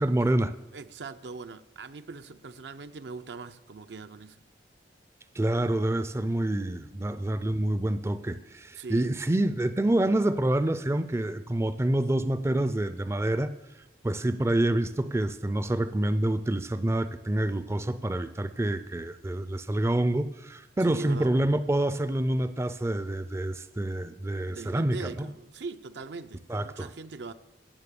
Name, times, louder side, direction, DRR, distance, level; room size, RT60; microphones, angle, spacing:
voice 1, 0.0-0.5 5.4-13.5 14.0-25.3 26.5-26.9, right 1 dB, 15° right, 0.4 m, -27 dB
voice 2, 0.7-4.4 8.8-9.1 20.8-21.3 24.5-27.3, right 4 dB, 75° right, 0.6 m, -41 dB
16.0 x 6.8 x 6.8 m
head